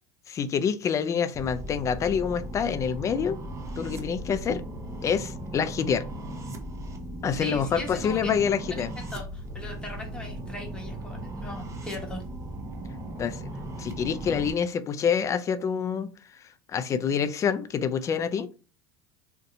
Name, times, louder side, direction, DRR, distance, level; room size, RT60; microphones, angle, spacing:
voice 1, 0.3-3.4 3.8-4.6 5.0-6.1 7.2-8.9 13.2-13.5 13.8-16.1 16.7-18.5, left 7 dB, 30° left, 12 dB, 0.3 m, -27 dB
sound 1, 1.3-14.5, right 1 dB, 25° right, 0.7 m, -37 dB
voice 2, 7.3-8.3 9.0-12.2, left 1 dB, 10° left, 0 dB, 1.1 m, -39 dB
2.7 x 2.2 x 3.8 m, 0.35 s
supercardioid pair, 110°, 11 cm